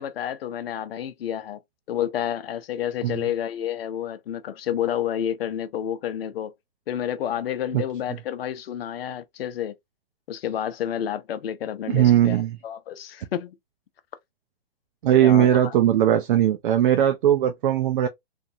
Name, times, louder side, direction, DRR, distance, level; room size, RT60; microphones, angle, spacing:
voice 1, 0.0-1.6 1.9-6.5 6.9-9.7 10.3-13.6 15.2-15.8, left 10 dB, 70° left, 0.6 m, -30 dB
voice 2, 11.9-12.6 15.0-18.1, right 11 dB, 55° right, 0.5 m, -19 dB
2.6 x 2.5 x 2.6 m
hypercardioid pair, 145°, 31 cm